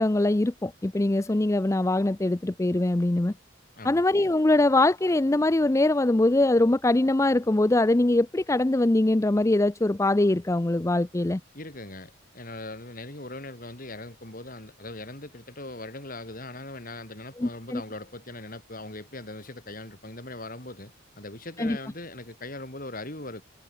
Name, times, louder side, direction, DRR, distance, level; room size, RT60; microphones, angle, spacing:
voice 1, 0.0-3.3 3.8-11.4 17.4-17.8 21.6-21.8, left 2 dB, 15° left, 0.4 m, -22 dB
voice 2, 11.5-23.4, left 2 dB, 45° left, 6.0 m, -40 dB
head